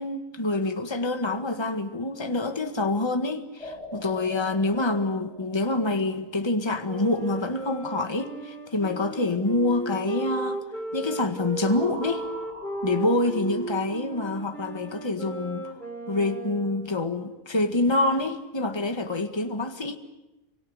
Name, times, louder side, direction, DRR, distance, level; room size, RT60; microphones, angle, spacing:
voice 1, 0.0-10.6 10.9-12.3 12.8-15.7 16.1-20.0, left 2 dB, 20° left, 1.7 m, -26 dB
sound 1, 3.6-6.8 11.6-14.4, equal, 20° right, 2.8 m, -44 dB
Wind instrument woodwind instrument, 6.8-16.9, right 2 dB, ahead, 5.0 m, -35 dB
27.5 x 24.5 x 8.3 m
omnidirectional pair, 1.5 m